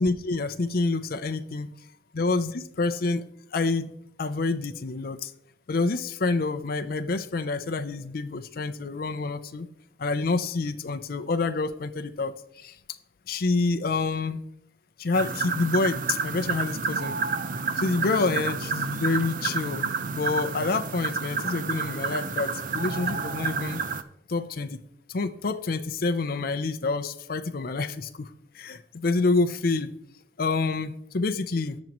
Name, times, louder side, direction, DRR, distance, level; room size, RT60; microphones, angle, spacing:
voice 1, 0.0-1.7 2.2-3.2 3.5-3.9 4.2-5.3 5.7-9.7 10.0-12.8 13.3-14.4 15.0-17.2 17.8-23.8 24.3-24.8 25.1-29.9 30.4-31.8, left 3 dB, 55° left, 8 dB, 0.5 m, -27 dB
sound 1, 15.1-24.0, right 5 dB, 50° right, 0.6 m, -30 dB
17.5 x 6.2 x 3.0 m, 0.77 s
head